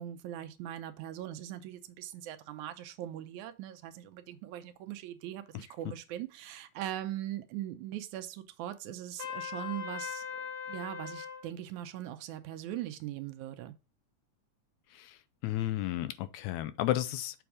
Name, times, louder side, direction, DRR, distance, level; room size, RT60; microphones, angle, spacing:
voice 1, 0.0-13.7, right 12 dB, 80° right, 2.1 m, -41 dB
Trumpet, 9.2-11.4, left 8 dB, 60° left, 1.6 m, -39 dB
voice 2, 15.4-17.4, left 14 dB, 80° left, 1.8 m, -32 dB
7.1 x 3.4 x 4.8 m
omnidirectional pair, 3.4 m